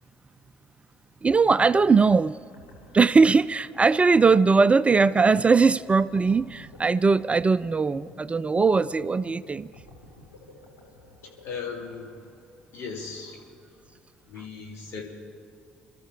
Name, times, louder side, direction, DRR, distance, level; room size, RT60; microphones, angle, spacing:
voice 1, 1.2-2.4 2.9-9.7, right 4 dB, 25° right, 16 dB, 0.3 m, -20 dB
sound 1, 1.6-12.3, left 3 dB, 85° left, 1.6 m, -48 dB
voice 2, 11.4-12.2 12.7-13.4 14.3-15.0, left 5 dB, 55° left, -1 dB, 3.6 m, -37 dB
28.5 x 13.5 x 2.8 m, 2.4 s
figure-of-eight pair, 50°, 5 cm